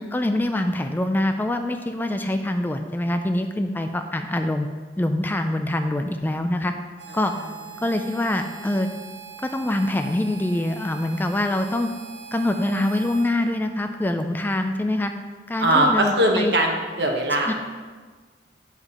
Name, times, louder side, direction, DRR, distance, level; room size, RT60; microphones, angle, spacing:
voice 1, 0.1-4.7 5.0-6.7 7.1-7.3 7.8-8.9 9.4-11.9 12.3-15.1 15.5-16.5 17.5-17.6, left 1 dB, 10° left, 6 dB, 0.3 m, -24 dB
Harmonica, 7.0-13.3, right 7 dB, 90° right, 1.4 m, -42 dB
voice 2, 15.6-17.5, right 1 dB, 65° right, 1 dB, 1.1 m, -20 dB
5.5 x 4.9 x 6.5 m, 1.4 s
head